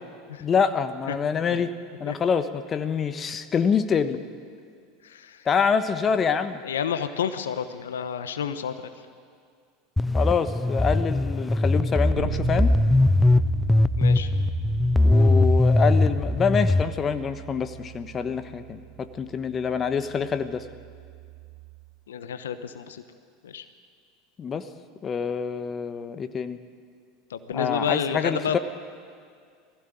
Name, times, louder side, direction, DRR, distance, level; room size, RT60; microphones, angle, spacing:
voice 1, 0.4-1.7 2.0-4.2 5.4-6.6 10.1-12.8 15.0-20.6 24.4-24.7 25.0-26.6 27.5-28.6, left 6 dB, 30° left, 10 dB, 1.2 m, -26 dB
voice 2, 5.0-5.5 6.6-8.9 14.0-14.3 22.1-23.0 23.4-23.6 27.3-28.6, left 8 dB, 80° left, 10 dB, 1.0 m, -30 dB
sound 1, 10.0-16.8, left 2 dB, 10° left, 0.5 m, -21 dB
Bass guitar, 12.1-21.9, right 19 dB, 55° right, 0.7 m, -36 dB
20.5 x 15.5 x 9.2 m, 2.2 s
hypercardioid pair, 80°, 0 cm